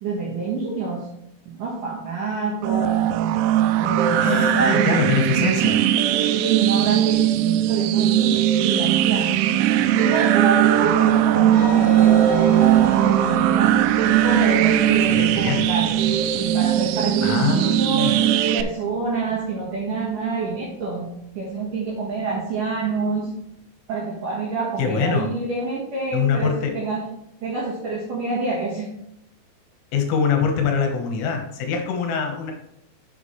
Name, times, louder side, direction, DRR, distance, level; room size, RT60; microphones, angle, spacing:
voice 1, 0.0-1.1 1.5-3.1 3.8-5.9 6.4-13.7 14.1-16.0 16.3-18.2 18.5-23.3 23.9-27.1 27.4-28.9 30.2-30.3, right 4 dB, 65° right, -5 dB, 2.2 m, -27 dB
sound 1, 2.6-18.6, right 11 dB, 90° right, 3.3 m, -19 dB
voice 2, 4.2-5.8 15.0-15.7 17.2-18.2 24.8-25.3 26.1-26.7 29.9-32.5, left 6 dB, 75° left, 3 dB, 3.6 m, -23 dB
sound 2, 11.5-22.4, left 1 dB, 55° left, 3.7 m, -39 dB
8.9 x 7.2 x 3.2 m, 0.79 s
omnidirectional pair, 5.9 m